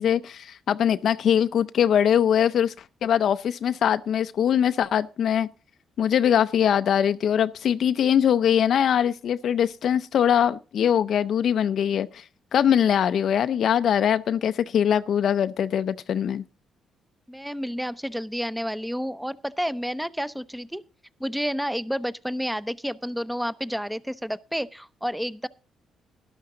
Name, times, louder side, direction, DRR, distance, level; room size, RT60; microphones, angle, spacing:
voice 1, 0.0-5.5 6.0-16.4, left 9 dB, 65° left, 0.5 m, -22 dB
voice 2, 17.3-20.8 21.2-25.5, equal, 5° right, 0.7 m, -30 dB
12.5 x 12.0 x 3.8 m
cardioid pair, 90°, 0 cm